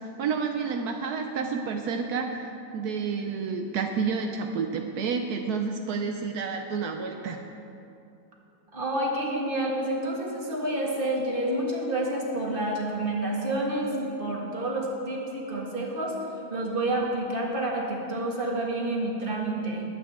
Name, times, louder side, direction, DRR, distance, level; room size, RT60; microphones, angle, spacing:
voice 1, 0.0-7.4, right 5 dB, 80° right, 3 dB, 1.2 m, -30 dB
voice 2, 8.7-16.2 16.5-19.8, right 1 dB, 35° right, -2 dB, 1.8 m, -29 dB
20.0 x 8.6 x 3.5 m, 2.7 s
omnidirectional pair, 1.7 m